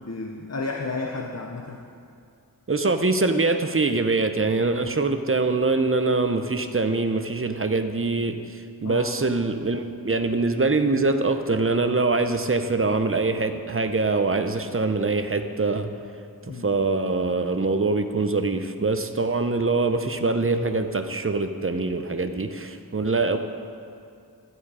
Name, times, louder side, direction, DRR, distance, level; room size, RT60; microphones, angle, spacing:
voice 1, 0.0-1.9 8.8-9.2 16.5-16.8, left 3 dB, 40° left, 2 dB, 0.8 m, -32 dB
voice 2, 2.7-15.9 16.5-23.4, right 3 dB, 35° right, 7 dB, 0.8 m, -24 dB
13.0 x 9.6 x 4.9 m, 2.5 s
wide cardioid pair, 50°, 38 cm